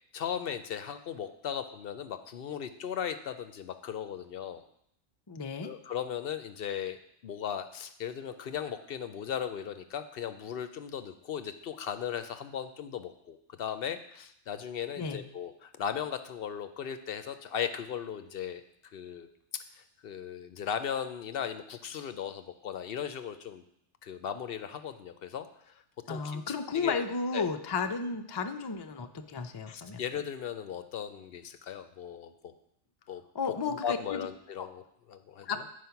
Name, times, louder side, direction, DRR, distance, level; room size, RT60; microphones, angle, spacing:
voice 1, 0.1-4.6 5.6-19.3 19.5-23.6 24.0-25.8 26.1-27.0 27.3-27.5 29.7-32.5 33.1-33.2 33.7-34.8 35.1-35.5, left 8 dB, 60° left, 10 dB, 0.7 m, -37 dB
voice 2, 5.3-5.7 15.0-15.2 26.1-30.0 33.3-34.3 34.6-34.7 35.4-35.6, left 5 dB, 45° left, 6 dB, 0.3 m, -33 dB
9.5 x 4.9 x 5.7 m, 0.74 s
omnidirectional pair, 1.2 m